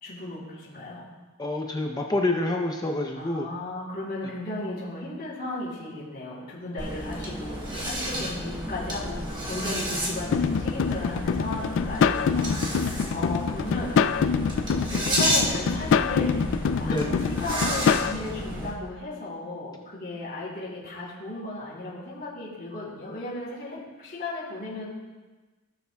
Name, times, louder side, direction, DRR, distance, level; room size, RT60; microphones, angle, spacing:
voice 1, 0.0-1.1 3.1-14.0 14.9-24.9, left 2 dB, 45° left, -8 dB, 3.3 m, -35 dB
voice 2, 1.4-3.5 16.8-17.1, left 2 dB, 20° left, 2 dB, 0.6 m, -27 dB
sound 1, 6.8-18.7, equal, 20° right, 1.4 m, -31 dB
sound 2, 10.3-18.1, left 6 dB, 60° left, 0.3 m, -25 dB
18.0 x 6.8 x 2.3 m, 1.2 s
head